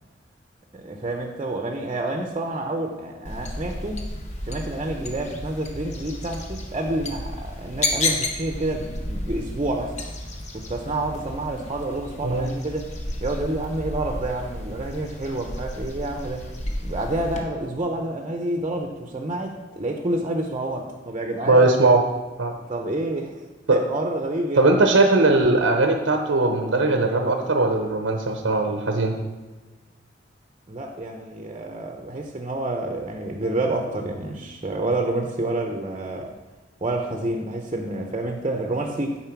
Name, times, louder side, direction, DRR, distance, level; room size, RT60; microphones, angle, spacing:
voice 1, 0.7-4.0 4.5-10.0 10.5-12.9 13.2-16.5 16.8-21.7 22.7-23.4 23.7-24.7 30.7-36.4 36.8-39.2, right 2 dB, 30° right, 3 dB, 0.7 m, -28 dB
sound 1, 3.2-17.4, left 2 dB, 40° left, 1.1 m, -32 dB
voice 2, 21.5-22.0 22.4-22.5 23.7-23.8 24.6-29.2, right 2 dB, 90° right, 4 dB, 0.8 m, -19 dB
9.0 x 4.4 x 5.9 m, 1.2 s
head